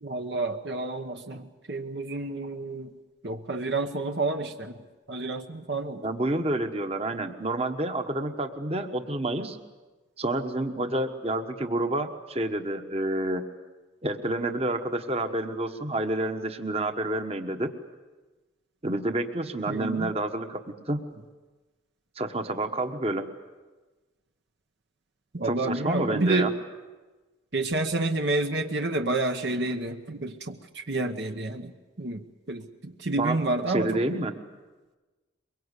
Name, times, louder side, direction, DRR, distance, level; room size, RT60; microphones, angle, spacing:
voice 1, 0.0-2.9 3.2-4.8 5.1-6.0 19.7-20.1 25.3-26.5 27.5-31.7 32.0-34.0, right 2 dB, 55° right, 5 dB, 1.0 m, -29 dB
voice 2, 6.0-9.6 10.2-13.4 14.0-17.7 18.8-20.6 20.9-21.0 22.2-23.2 25.4-26.5 33.2-33.4 33.7-34.3, right 1 dB, 30° right, 7 dB, 1.3 m, -29 dB
23.0 x 23.0 x 8.3 m, 1.2 s
head